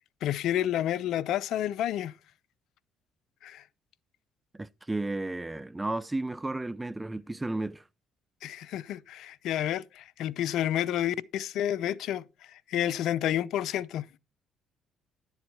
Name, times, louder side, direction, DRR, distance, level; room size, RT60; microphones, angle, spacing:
voice 1, 0.2-2.1 3.4-3.6 8.4-12.2 12.5-14.1, left 11 dB, 70° left, 0.5 m, -30 dB
voice 2, 4.5-7.8, right 2 dB, 15° right, 0.5 m, -33 dB
11.0 x 7.3 x 4.4 m
supercardioid pair, 60°, 0 cm